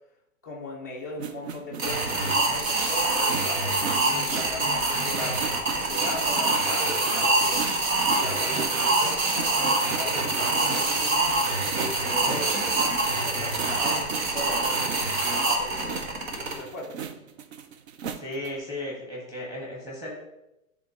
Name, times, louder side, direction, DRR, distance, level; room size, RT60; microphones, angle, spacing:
voice 1, 0.4-3.3 3.9-5.5 5.8-7.7 8.1-12.6 13.2-16.0 16.5-17.0, left 2 dB, 15° left, -7 dB, 0.3 m, -38 dB
sound 1, 1.2-15.2 15.8-18.6, right 7 dB, 50° right, 0.5 m, -38 dB
sound 2, 1.8-16.5, right 2 dB, 65° right, 1.6 m, -25 dB
voice 2, 18.1-20.1, left 1 dB, 10° right, -5 dB, 1.7 m, -35 dB
10.5 x 3.6 x 3.0 m, 0.89 s
hypercardioid pair, 160°, 42 cm